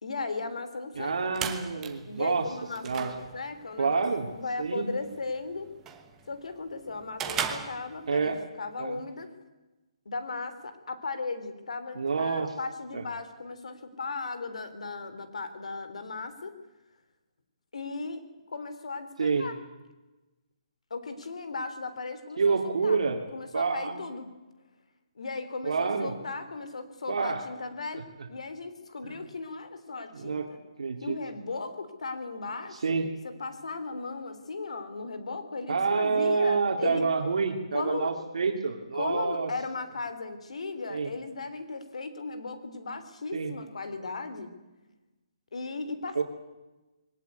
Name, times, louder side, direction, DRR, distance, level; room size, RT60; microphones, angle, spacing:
voice 1, 0.0-1.3 2.1-4.1 4.3-5.7 6.3-9.3 10.1-16.5 17.7-18.2 18.5-19.6 20.9-23.0 23.3-24.3 25.2-30.6 31.0-37.0 37.7-38.1 38.9-44.5 45.5-46.2, left 3 dB, 80° left, 11 dB, 3.5 m, -37 dB
sound 1, 0.9-8.4, right 8 dB, 10° right, 1.1 m, -39 dB
voice 2, 1.0-2.5 2.8-3.1 3.8-4.3 4.6-4.9 8.1-8.4 8.8-9.0 12.0-12.5 12.9-13.0 19.2-19.5 22.4-23.2 23.5-24.1 25.6-26.1 27.1-27.4 29.0-29.1 30.1-30.5 30.8-31.2 32.8-33.1 35.7-39.5 40.9-41.1 43.3-43.5 46.1-46.2, right 4 dB, 70° right, 3 dB, 2.5 m, -28 dB
21.5 x 18.5 x 9.5 m, 1.1 s
hypercardioid pair, 175°, 3 cm